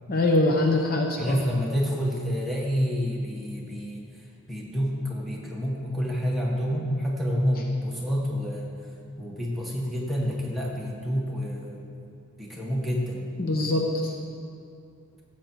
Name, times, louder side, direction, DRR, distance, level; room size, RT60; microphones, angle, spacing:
voice 1, 0.1-1.3 13.4-14.1, left 2 dB, 45° left, 1 dB, 0.9 m, -23 dB
voice 2, 1.2-4.1 4.5-8.7 9.2-11.9 12.4-13.3, equal, ahead, -4 dB, 1.7 m, -28 dB
15.5 x 7.6 x 4.6 m, 2.3 s
head